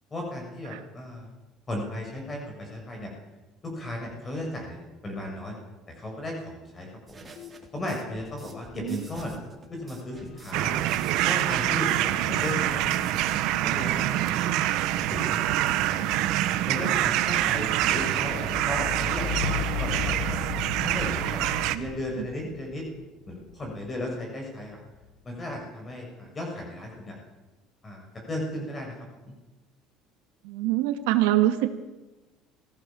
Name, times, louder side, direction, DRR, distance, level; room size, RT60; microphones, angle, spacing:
voice 1, 0.1-1.3 1.7-3.1 3.6-4.8 5.0-5.6 5.9-7.3 7.7-9.4 9.7-10.8 11.2-13.2 13.5-14.6 15.1-16.3 16.7-20.4 20.8-22.9 23.3-24.8 25.2-27.2 27.8-29.0 29.3-29.4, left 1 dB, 20° left, 1 dB, 6.6 m, -35 dB
sound 1, 7.1-13.4, right 3 dB, 15° right, 3.8 m, -48 dB
sound 2, 7.3-8.7 8.9-24.0 24.7-25.3, left 10 dB, 65° left, 1.3 m, -39 dB
sound 3, 10.5-21.8, right 14 dB, 70° right, 1.5 m, -26 dB
voice 2, 30.4-31.8, right 14 dB, 90° right, 7 dB, 2.4 m, -25 dB
26.5 x 17.0 x 7.2 m, 1.1 s
cardioid pair, 130°, 0 cm